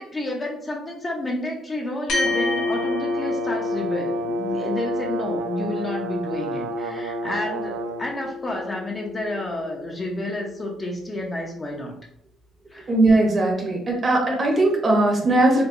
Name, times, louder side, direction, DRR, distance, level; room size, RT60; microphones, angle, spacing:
voice 1, 0.0-12.0 12.7-12.9, left 1 dB, 25° left, 0 dB, 0.6 m, -30 dB
sound 1, 2.1-10.8, left 4 dB, 70° left, 1.4 m, -30 dB
Brass instrument, 2.2-8.0, right 5 dB, 85° right, 0.3 m, -30 dB
voice 2, 12.9-15.7, right 2 dB, 30° right, 1 dB, 0.8 m, -19 dB
4.4 x 2.2 x 2.6 m, 0.72 s
cardioid pair, 120°, 0 cm